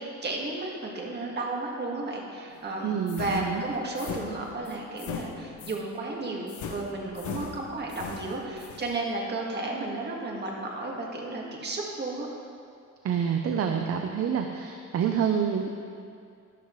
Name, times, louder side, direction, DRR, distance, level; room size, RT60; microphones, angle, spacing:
voice 1, 0.0-12.3, right 2 dB, 35° right, -2 dB, 1.9 m, -33 dB
voice 2, 2.8-3.6 13.0-15.7, right 7 dB, 50° right, 4 dB, 0.7 m, -27 dB
sound 1, 3.1-5.9 6.5-8.9, left 6 dB, 75° left, 1.0 m, -39 dB
12.5 x 11.5 x 3.2 m, 2.4 s
cardioid pair, 125°, 30 cm